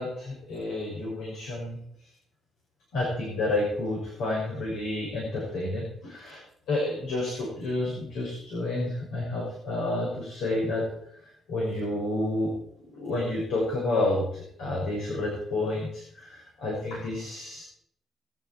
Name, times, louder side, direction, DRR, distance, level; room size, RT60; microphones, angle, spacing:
voice 1, 0.0-1.8 2.9-6.4 6.7-10.8 11.5-12.5 13.0-17.6, left 2 dB, 85° left, -3 dB, 6.5 m, -30 dB
21.0 x 11.0 x 4.7 m, 0.68 s
cardioid pair, 90°, 0 cm